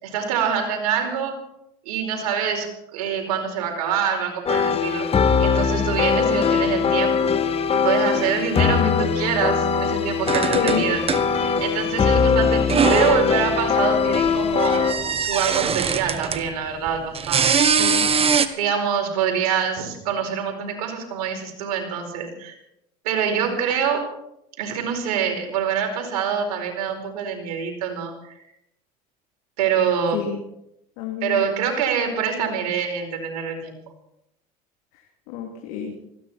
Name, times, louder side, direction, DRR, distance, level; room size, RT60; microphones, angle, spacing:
voice 1, 0.0-1.4 1.8-5.1 5.4-7.4 7.7-11.0 11.3-17.7 18.5-22.6 23.0-24.1 24.6-28.4 29.6-30.2 31.2-33.8, right 7 dB, 85° right, 3 dB, 4.8 m, -25 dB
sound 1, 4.5-14.9, left 6 dB, 30° left, 2.0 m, -21 dB
voice 2, 8.5-9.0 10.5-11.0 17.8-18.1 30.1-30.4 31.0-31.4 35.3-35.9, left 8 dB, 75° left, 1 dB, 3.1 m, -28 dB
sound 2, 10.3-11.6 11.9-13.3 14.1-16.5 16.9-18.5, right 6 dB, 30° right, 1.5 m, -22 dB
20.0 x 16.5 x 4.4 m, 0.79 s
supercardioid pair, 90°, 19 cm